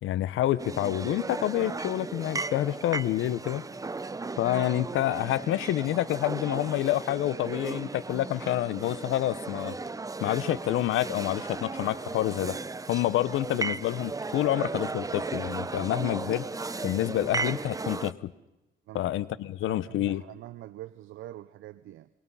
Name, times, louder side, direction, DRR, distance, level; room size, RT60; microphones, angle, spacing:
voice 1, 0.0-3.6 4.4-9.8 10.2-12.6 12.9-16.5 16.8-18.3 18.9-20.2, left 14 dB, 85° left, 0.8 m, -28 dB
sound 1, 0.6-18.1, right 3 dB, 15° right, 0.7 m, -36 dB
voice 2, 19.6-22.1, right 14 dB, 80° right, 0.7 m, -44 dB
25.5 x 22.0 x 5.6 m
cardioid pair, 90°, 20 cm